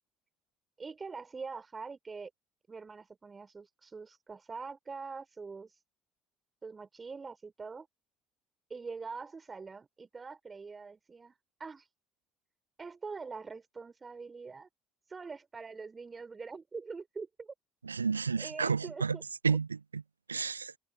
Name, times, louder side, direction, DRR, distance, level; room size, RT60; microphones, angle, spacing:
voice 1, 0.8-2.3 2.7-5.8 6.6-7.9 8.7-11.9 12.8-14.7 15.1-17.5 18.4-19.2 19.5-19.6, right 4 dB, 25° right, 3.8 m, -44 dB
voice 2, 17.8-19.2 19.4-20.0 20.3-20.7, right 5 dB, 80° right, 0.3 m, -31 dB
figure-of-eight pair, 60°, 0 cm